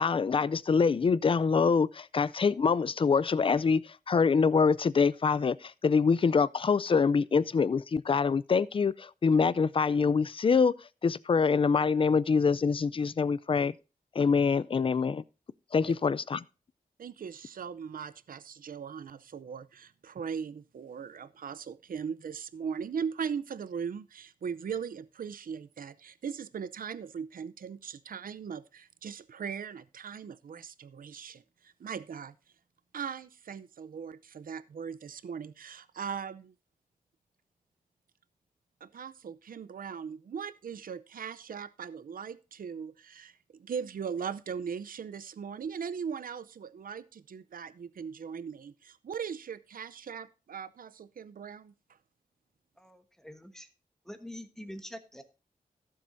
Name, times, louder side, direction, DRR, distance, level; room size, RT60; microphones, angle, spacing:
voice 1, 0.0-10.7 11.0-13.7 14.2-15.2 15.7-16.4, left 5 dB, 35° left, 0.4 m, -25 dB
voice 2, 17.0-32.3 32.9-36.5 38.8-51.7, right 7 dB, 70° right, 0.6 m, -39 dB
voice 3, 52.8-53.7 54.0-55.2, equal, 5° left, 1.2 m, -45 dB
17.0 x 7.5 x 2.6 m
wide cardioid pair, 150°, 15 cm